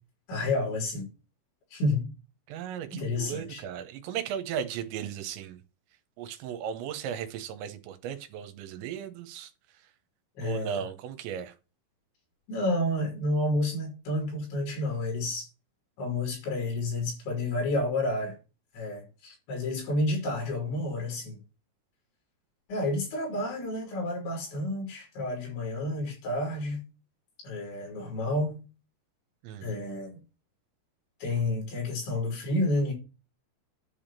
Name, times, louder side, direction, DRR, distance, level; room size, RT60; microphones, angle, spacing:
voice 1, 0.3-1.1 1.7-2.1 2.9-3.6 10.4-10.8 12.5-15.5 16.0-18.4 18.7-21.4 22.7-26.8 27.4-28.6 29.6-30.2 31.2-32.9, left 1 dB, 75° left, 6.2 m, -30 dB
voice 2, 2.5-5.6 6.2-9.5 10.4-11.5 29.4-29.7, right 9 dB, 80° right, 3.3 m, -36 dB
10.5 x 3.6 x 7.3 m
omnidirectional pair, 5.3 m